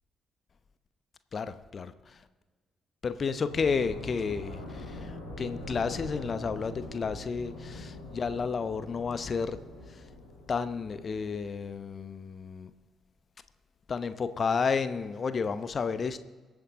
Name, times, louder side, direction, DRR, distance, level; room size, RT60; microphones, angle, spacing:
voice 1, 1.3-2.2 3.0-10.0 10.5-12.7 13.9-16.2, left 5 dB, 40° left, 0.8 m, -32 dB
sound 1, 3.5-11.7, left 2 dB, 80° left, 3.5 m, -43 dB
23.0 x 8.7 x 3.7 m
figure-of-eight pair, 40°, 0 cm